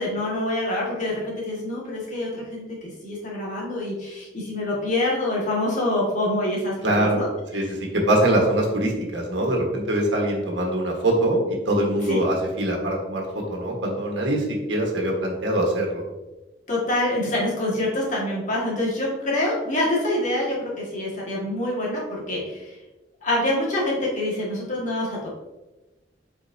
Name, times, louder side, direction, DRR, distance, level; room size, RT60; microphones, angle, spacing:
voice 1, 0.0-7.3 7.5-7.6 12.1-12.3 16.7-22.8 23.2-25.3, left 1 dB, 45° left, -5 dB, 2.0 m, -26 dB
voice 2, 6.8-7.2 7.5-16.0, right 1 dB, 85° right, 0 dB, 1.5 m, -23 dB
7.7 x 4.5 x 2.8 m, 1.1 s
head